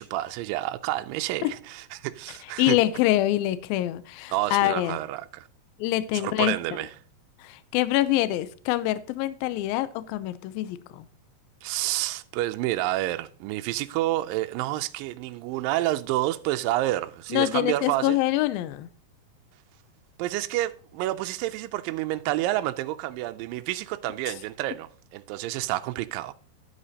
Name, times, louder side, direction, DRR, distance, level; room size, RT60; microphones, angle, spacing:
voice 1, 0.0-2.8 4.3-5.5 6.1-6.9 11.6-18.2 20.2-26.3, right 16 dB, 80° right, 2.1 m, -29 dB
voice 2, 2.6-5.0 5.8-6.5 7.4-11.1 17.3-18.9, left 15 dB, 80° left, 2.3 m, -25 dB
12.0 x 8.1 x 2.8 m
omnidirectional pair, 4.3 m